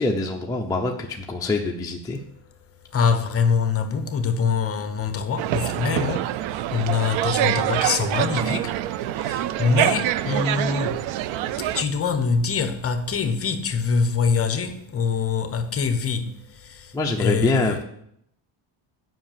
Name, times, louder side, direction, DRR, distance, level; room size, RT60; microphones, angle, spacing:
voice 1, 0.0-2.2 16.9-17.8, left 2 dB, 10° left, 0.6 m, -24 dB
voice 2, 2.9-6.4 6.7-11.1 11.6-17.8, left 5 dB, 30° left, 0.9 m, -24 dB
sound 1, 5.4-11.8, right 13 dB, 80° right, 0.6 m, -25 dB
7.8 x 5.7 x 7.4 m
cardioid pair, 150°, 46 cm